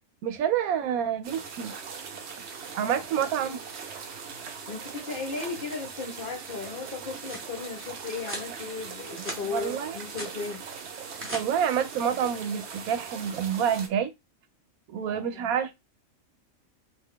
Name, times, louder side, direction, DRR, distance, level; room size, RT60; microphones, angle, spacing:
voice 1, 0.2-1.7 2.8-3.6 9.4-10.0 11.3-14.1 14.9-15.7, right 8 dB, 90° right, 1.0 m, -28 dB
sound 1, 1.2-13.9, right 6 dB, 60° right, 0.8 m, -40 dB
voice 2, 4.7-10.6 15.0-15.5, left 4 dB, 50° left, 0.7 m, -36 dB
sound 2, 7.2-7.5 8.2-8.5 9.0-9.4 9.8-10.3 10.9-11.4, right 1 dB, 10° right, 0.7 m, -39 dB
2.6 x 2.3 x 3.5 m
omnidirectional pair, 1.5 m